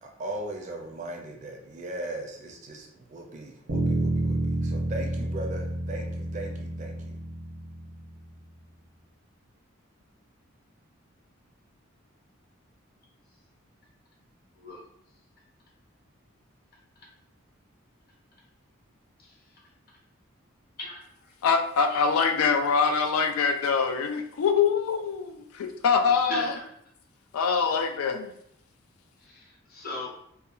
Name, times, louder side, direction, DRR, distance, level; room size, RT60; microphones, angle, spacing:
voice 1, 0.0-7.2, right 1 dB, 35° right, 2 dB, 0.4 m, -38 dB
Bass guitar, 3.7-8.1, right 1 dB, 90° right, 0.7 m, -29 dB
voice 2, 20.8-21.3 21.9-22.2 26.1-26.5 29.2-30.1, left 1 dB, 45° left, -2 dB, 0.7 m, -38 dB
voice 3, 21.4-26.5 27.3-28.3, left 5 dB, 90° left, 7 dB, 0.3 m, -24 dB
2.7 x 2.2 x 2.4 m, 0.70 s
head